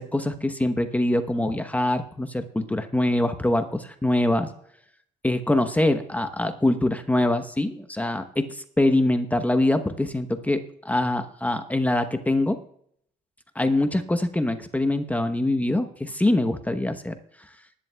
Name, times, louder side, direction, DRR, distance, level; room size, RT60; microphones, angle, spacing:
voice 1, 0.0-4.5 5.2-12.6 13.5-17.1, left 1 dB, 10° left, 8 dB, 0.9 m, -24 dB
20.0 x 11.0 x 2.3 m, 0.65 s
cardioid pair, 110°, 17 cm